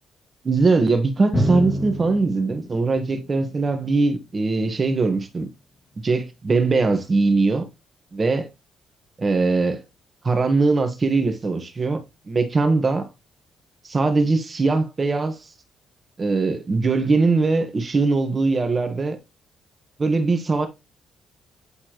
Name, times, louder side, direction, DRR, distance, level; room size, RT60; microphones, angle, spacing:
voice 1, 0.4-5.5 6.0-7.6 8.1-8.5 9.2-9.8 10.2-12.0 12.3-13.0 13.8-15.4 16.2-19.2 20.0-20.7, right 3 dB, 30° right, 1.3 m, -21 dB
Drum, 1.3-4.9, equal, 30° left, 1.8 m, -28 dB
8.3 x 4.3 x 3.0 m
cardioid pair, 90°, 0 cm